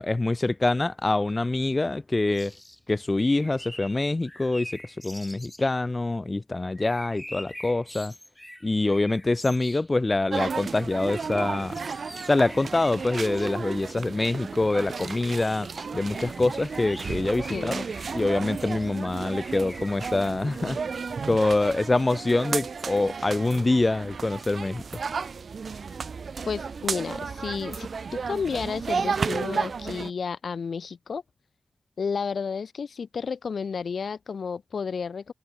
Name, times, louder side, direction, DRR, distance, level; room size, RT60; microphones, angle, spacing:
voice 1, 0.0-2.5 2.9-4.7 5.0-8.1 8.6-11.8 12.3-15.7 15.9-17.9 18.1-20.8 21.3-24.8, left 2 dB, 30° left, 0.4 m, -25 dB
sound 1, 2.3-2.8 3.2-5.8 6.8-9.9 10.7-13.6 14.4-18.9 19.4-20.3, left 1 dB, 10° left, 4.7 m, -44 dB
sound 2, 10.3-30.1, right 5 dB, 80° right, 0.6 m, -33 dB
voice 2, 26.5-31.2 32.0-35.3, left 5 dB, 85° left, 0.6 m, -32 dB
wide cardioid pair, 80°, 0 cm